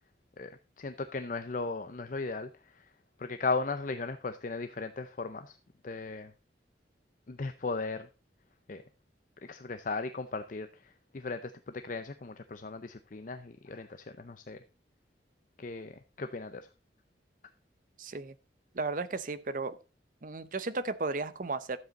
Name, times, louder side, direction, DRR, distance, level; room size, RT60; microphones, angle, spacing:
voice 1, 0.4-2.9 3.2-5.5 5.8-6.3 7.3-8.1 8.7-8.8 9.4-14.6 15.6-16.7, left 3 dB, 45° left, 10 dB, 0.5 m, -37 dB
voice 2, 18.0-18.3 18.7-19.8 20.2-21.8, right 3 dB, 45° right, 14 dB, 0.7 m, -34 dB
12.0 x 7.7 x 4.0 m, 0.32 s
head